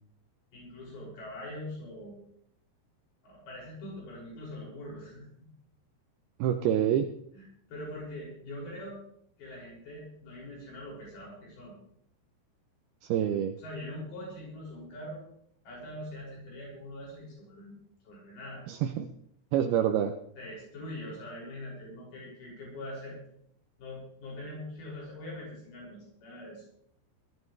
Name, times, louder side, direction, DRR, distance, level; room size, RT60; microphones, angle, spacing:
voice 1, 0.5-2.2 3.2-5.5 7.3-9.0 9.4-11.7 13.6-15.2 15.6-17.8 18.0-18.6 20.4-23.2 23.8-26.6, left 1 dB, 65° left, -3 dB, 8.3 m, -43 dB
voice 2, 6.4-7.1 13.0-13.6 18.7-19.1 19.5-20.2, right 9 dB, 80° right, 6 dB, 2.4 m, -27 dB
20.0 x 14.5 x 3.3 m, 0.68 s
omnidirectional pair, 4.9 m